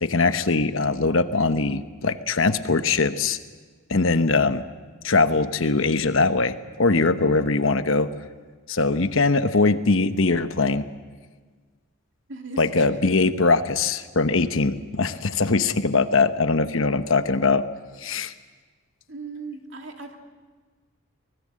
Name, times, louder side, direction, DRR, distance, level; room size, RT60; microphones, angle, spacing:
voice 1, 0.0-3.4 3.9-4.6 5.0-8.1 8.7-10.9 12.6-17.6 18.0-18.3, left 3 dB, 70° left, 10 dB, 1.0 m, -21 dB
voice 2, 7.0-7.4 12.3-13.2 19.1-20.2, right 3 dB, 60° right, 3 dB, 2.6 m, -38 dB
24.0 x 20.0 x 7.6 m, 1.4 s
head